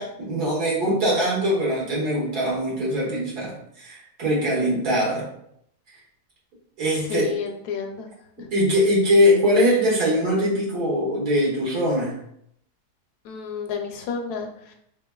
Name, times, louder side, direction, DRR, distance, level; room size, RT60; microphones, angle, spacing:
voice 1, 0.0-5.3 6.8-7.3 8.5-12.2, equal, 75° right, -5 dB, 1.9 m, -22 dB
voice 2, 7.1-8.1 13.2-14.7, left 6 dB, 75° left, 3 dB, 1.0 m, -31 dB
3.7 x 3.6 x 2.2 m, 0.74 s
omnidirectional pair, 1.7 m